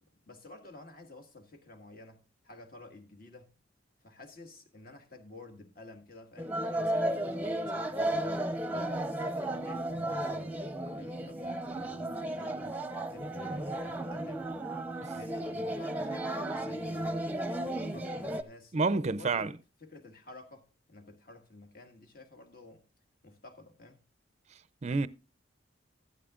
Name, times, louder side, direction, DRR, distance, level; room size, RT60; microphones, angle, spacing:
voice 1, 0.1-3.5 4.0-8.4 8.7-10.6 10.9-14.5 15.1-22.8 23.2-24.0, left 2 dB, 50° left, 1.7 m, -52 dB
sound 1, 6.4-18.4, right 1 dB, 10° right, 0.8 m, -34 dB
voice 2, 18.7-19.5 24.8-25.1, right 3 dB, 35° right, 0.5 m, -29 dB
14.5 x 12.0 x 2.5 m
head